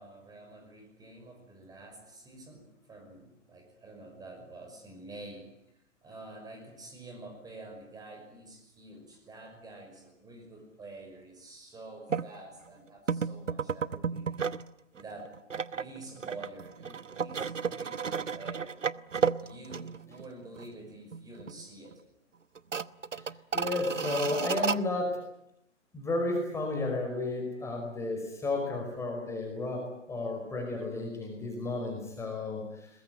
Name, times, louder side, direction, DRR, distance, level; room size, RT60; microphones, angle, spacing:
voice 1, 0.0-5.5 6.0-14.4 14.9-15.3 15.7-18.8 19.4-21.9, right 2 dB, 10° right, 3 dB, 5.7 m, -48 dB
sound 1, 12.1-12.3 13.1-14.7 15.0-20.3 20.6-20.7 21.1-21.6 21.9-22.0 22.5-24.8, right 6 dB, 80° right, 1.0 m, -32 dB
voice 2, 23.5-25.2 25.9-32.9, left 2 dB, 5° left, 1 dB, 5.2 m, -33 dB
23.0 x 21.0 x 9.3 m, 0.77 s
figure-of-eight pair, 130°, 37 cm